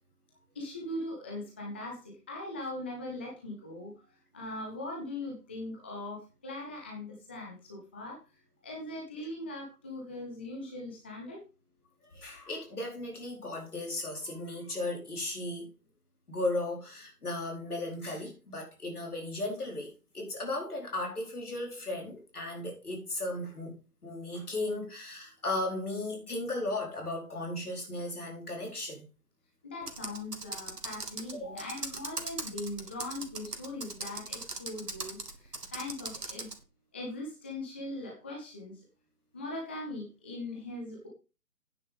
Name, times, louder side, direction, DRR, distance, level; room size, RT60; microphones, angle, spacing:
voice 1, 0.5-3.9 4.3-8.2 8.6-11.4 29.6-36.5 36.9-38.8 39.3-41.1, left 2 dB, 10° left, 0.6 m, -40 dB
voice 2, 12.1-15.7 16.3-23.7 24.0-29.1 31.3-31.7, left 2 dB, 70° left, 4.7 m, -36 dB
Computer keyboard, 29.8-36.6, right 3 dB, 80° right, 2.1 m, -40 dB
9.5 x 6.6 x 5.3 m
figure-of-eight pair, 140°, 47 cm